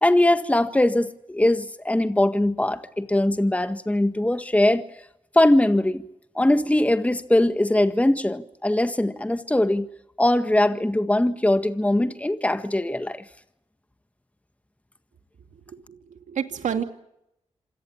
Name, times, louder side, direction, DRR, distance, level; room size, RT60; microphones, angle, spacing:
voice 1, 0.0-4.8 5.3-6.0 6.3-9.9 10.2-13.2, left 1 dB, 10° left, 1.6 m, -21 dB
voice 2, 15.5-16.8, right 8 dB, 80° right, 2.5 m, -30 dB
26.5 x 19.0 x 8.7 m
cardioid pair, 55°, 13 cm